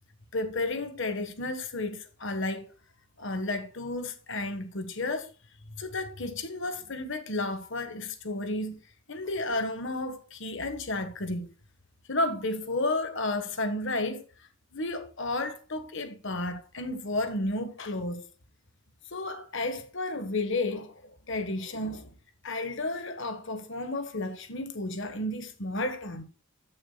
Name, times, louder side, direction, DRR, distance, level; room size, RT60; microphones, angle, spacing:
voice 1, 0.3-2.7 3.2-5.3 5.7-8.8 9.1-11.5 12.1-14.2 14.7-18.3 19.1-22.1 22.4-26.2, left 2 dB, 55° left, 1.3 m, -32 dB
14.0 x 6.4 x 2.3 m
head